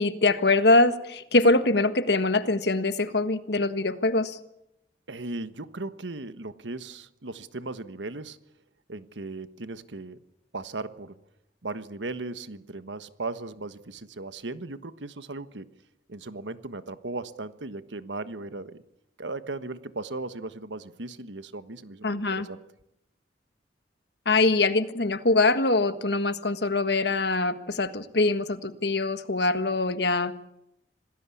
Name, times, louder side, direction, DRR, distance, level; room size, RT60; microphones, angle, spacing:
voice 1, 0.0-4.4 22.0-22.5 24.2-30.3, left 2 dB, 65° left, 11 dB, 1.5 m, -23 dB
voice 2, 5.1-8.4 8.9-10.2 10.5-11.2 11.6-15.7 16.1-18.8 19.2-22.6 29.4-29.5, right 2 dB, 90° right, 12 dB, 1.4 m, -37 dB
27.0 x 18.5 x 8.5 m, 0.81 s
head